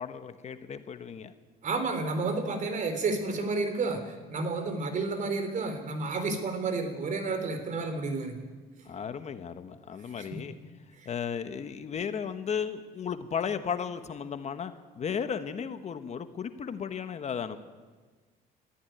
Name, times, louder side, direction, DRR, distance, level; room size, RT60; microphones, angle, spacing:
voice 1, 0.0-1.3 8.8-10.5 11.0-17.6, left 7 dB, 40° left, 10 dB, 1.2 m, -35 dB
voice 2, 1.6-8.4 10.2-10.4 11.0-11.1, right 3 dB, 50° right, 8 dB, 3.6 m, -31 dB
21.5 x 14.5 x 9.2 m, 1.4 s
cardioid pair, 110°, 17 cm